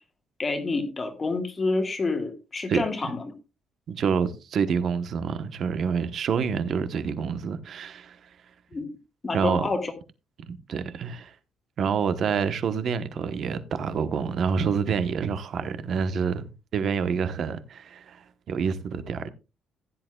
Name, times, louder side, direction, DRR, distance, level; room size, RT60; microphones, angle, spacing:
voice 1, 0.4-3.2 8.7-8.9 9.2-9.9, left 3 dB, 20° left, 1.6 m, -28 dB
voice 2, 3.9-8.4 9.3-9.7 10.5-11.3 11.8-19.3, right 6 dB, 45° right, 1.0 m, -27 dB
15.5 x 10.5 x 2.3 m
cardioid pair, 165°, 0 cm